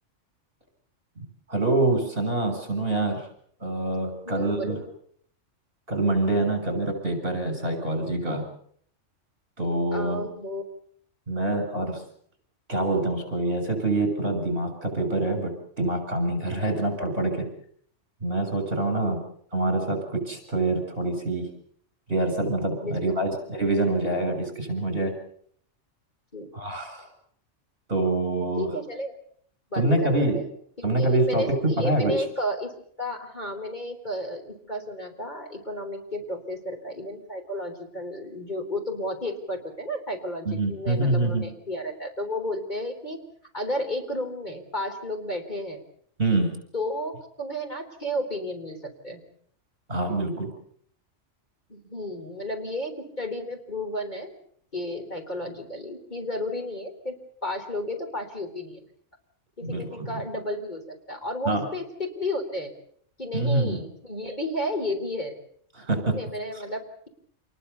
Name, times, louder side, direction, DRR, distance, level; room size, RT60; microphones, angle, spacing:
voice 1, 1.2-3.3 3.6-4.8 5.9-8.5 9.6-10.2 11.3-12.0 12.7-15.5 15.8-17.4 18.2-19.2 19.5-21.5 22.1-25.1 26.5-27.1 27.9-28.7 29.7-30.4 30.8-32.1 40.5-41.4 46.2-46.5 49.9-50.5 59.6-60.2 61.5-61.6 63.3-63.8 65.8-66.2, right 2 dB, 50° right, 6 dB, 7.2 m, -25 dB
voice 2, 4.3-4.8 9.9-10.6 16.7-16.8 19.0-19.2 22.8-23.0 26.3-26.8 28.6-29.2 29.7-30.5 31.0-32.7 33.0-43.2 43.5-45.8 46.7-49.2 51.7-54.4 54.7-58.9 59.6-62.7 63.2-65.4 66.1-67.1, left 1 dB, 35° left, 3 dB, 4.0 m, -32 dB
28.0 x 20.5 x 7.0 m, 0.63 s
omnidirectional pair, 1.3 m